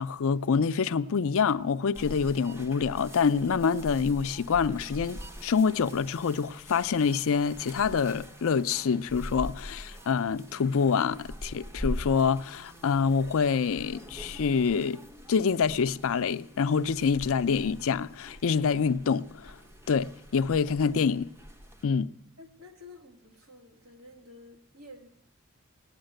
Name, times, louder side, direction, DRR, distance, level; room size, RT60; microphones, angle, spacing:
voice 1, 0.0-15.0 15.3-19.6 19.9-21.3 21.8-22.1, left 6 dB, 65° left, 0.5 m, -26 dB
sound 1, 1.9-21.8, equal, 10° right, 0.7 m, -43 dB
voice 2, 22.4-25.1, left 2 dB, 75° right, 2.4 m, -50 dB
18.5 x 8.8 x 7.7 m
head